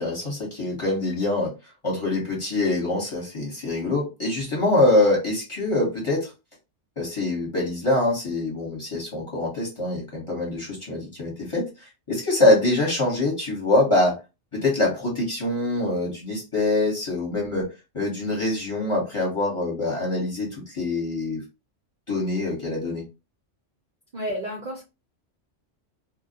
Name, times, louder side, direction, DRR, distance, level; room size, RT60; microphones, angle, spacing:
voice 1, 0.0-1.5 1.8-6.3 7.0-14.2 14.5-17.7 17.9-21.4 22.1-23.0, left 2 dB, 25° left, -3 dB, 0.9 m, -24 dB
voice 2, 24.1-24.8, equal, 50° right, -2 dB, 0.5 m, -31 dB
2.2 x 2.1 x 2.7 m, 0.27 s
omnidirectional pair, 1.3 m